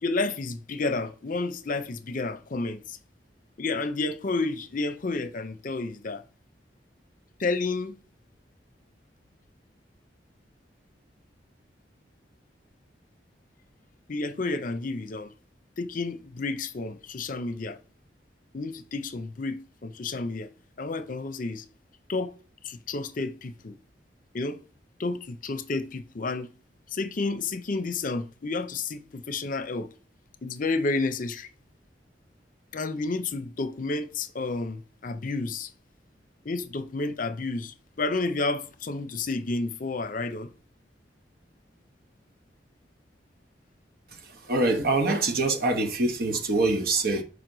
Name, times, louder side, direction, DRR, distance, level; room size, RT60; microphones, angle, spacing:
voice 1, 0.0-3.0 3.6-6.2 7.4-8.0 14.1-15.3 15.8-17.8 18.5-20.5 20.8-21.6 22.1-22.3 22.6-23.8 24.3-24.6 25.0-26.5 26.9-29.9 30.4-31.5 32.7-35.7 36.4-40.5, left 3 dB, 50° left, 0.6 m, -30 dB
voice 2, 44.5-47.2, right 2 dB, 60° right, 1.2 m, -24 dB
6.3 x 5.1 x 3.9 m
head